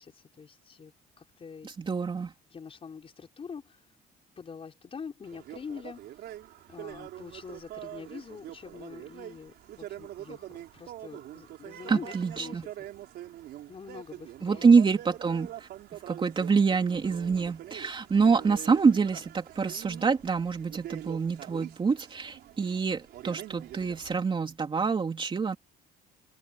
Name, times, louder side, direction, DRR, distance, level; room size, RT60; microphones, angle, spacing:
voice 1, 0.0-1.7 2.5-3.9 4.3-6.3 6.7-12.7 13.7-14.7 17.8-18.5, left 6 dB, 35° left, 4.8 m, -45 dB
voice 2, 1.6-2.3 11.9-12.6 14.4-15.7 16.1-25.6, right 5 dB, 30° right, 3.1 m, -26 dB
sound 1, 5.2-24.2, right 13 dB, 75° right, 4.6 m, -45 dB
open air
cardioid pair, 110°, 17 cm